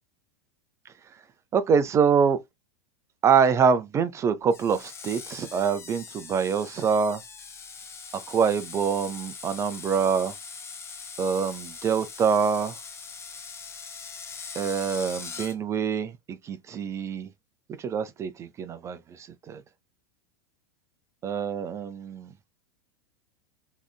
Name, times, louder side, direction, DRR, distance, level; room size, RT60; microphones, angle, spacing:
voice 1, 1.5-2.4 3.2-7.2 8.3-10.3 11.2-12.8 14.5-17.3 17.8-19.6 21.2-22.3, right 6 dB, 25° right, 0.4 m, -25 dB
Screech, 4.5-15.6, left 5 dB, 20° left, 0.8 m, -41 dB
3.6 x 3.2 x 2.2 m
figure-of-eight pair, 90°, 12 cm